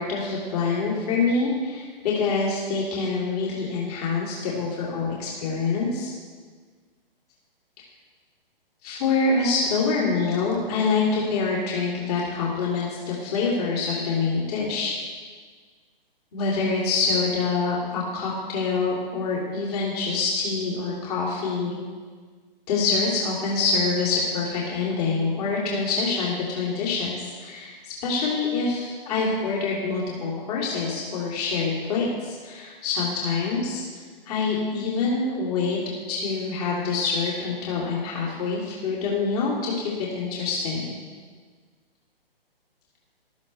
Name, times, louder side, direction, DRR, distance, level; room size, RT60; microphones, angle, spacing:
voice 1, 0.0-6.1 8.8-14.9 16.3-21.8 22.7-33.8 34.3-35.8 36.1-41.0, left 4 dB, 40° left, -5 dB, 3.0 m, -26 dB
14.5 x 13.0 x 3.3 m, 1.5 s
figure-of-eight pair, 130°, 29 cm